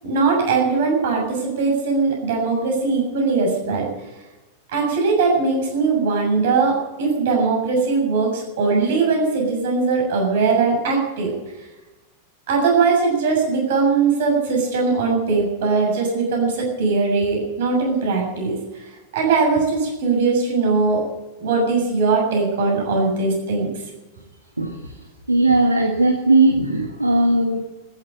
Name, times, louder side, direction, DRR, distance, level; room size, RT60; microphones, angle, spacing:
voice 1, 0.0-3.9 4.7-11.3 12.5-18.6 19.1-21.0 21.4-23.7, right 4 dB, 55° right, 0 dB, 7.2 m, -20 dB
voice 2, 25.3-27.6, right 2 dB, 85° right, 2 dB, 1.6 m, -17 dB
14.0 x 11.0 x 8.9 m, 1.1 s
figure-of-eight pair, 90°, 0 cm